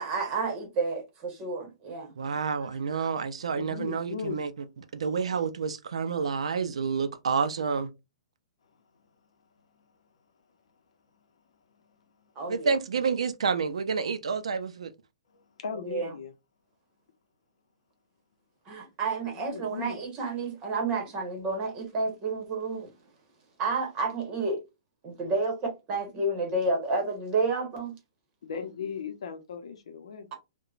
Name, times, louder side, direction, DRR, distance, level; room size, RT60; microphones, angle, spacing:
voice 1, 0.0-2.1 12.4-12.7 15.8-16.1 18.7-22.9 23.6-24.6 25.0-27.9, right 3 dB, 25° right, 1.0 m, -30 dB
voice 2, 2.2-4.5 4.9-7.9 12.5-14.9, right 5 dB, 85° right, 0.4 m, -29 dB
voice 3, 3.5-4.4 15.3-16.3 19.2-20.0 28.4-30.3, left 6 dB, 75° left, 0.6 m, -37 dB
2.9 x 2.1 x 2.4 m
hypercardioid pair, 150°, 3 cm